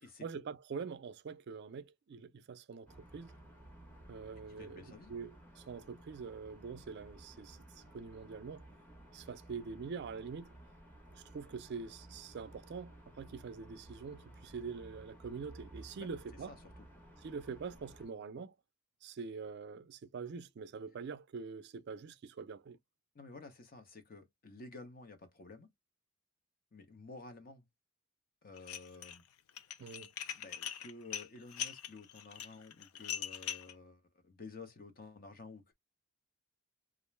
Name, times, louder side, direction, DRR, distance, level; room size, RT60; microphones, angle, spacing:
voice 1, 0.2-3.3 4.1-8.7 9.1-10.5 11.2-16.6 17.2-18.5 19.0-22.8 29.8-30.1, right 5 dB, 50° right, 0.3 m, -45 dB
sound 1, 2.8-18.1, right 1 dB, 10° left, 0.8 m, -56 dB
voice 2, 4.5-5.2 16.0-16.1 16.5-16.6 23.1-25.7 26.7-27.7 28.4-29.2 30.3-35.7, left 3 dB, 40° left, 0.7 m, -52 dB
Dishes pots and pans, 28.6-29.2 29.5-33.7, left 9 dB, 85° left, 0.4 m, -41 dB
2.4 x 2.1 x 3.1 m
head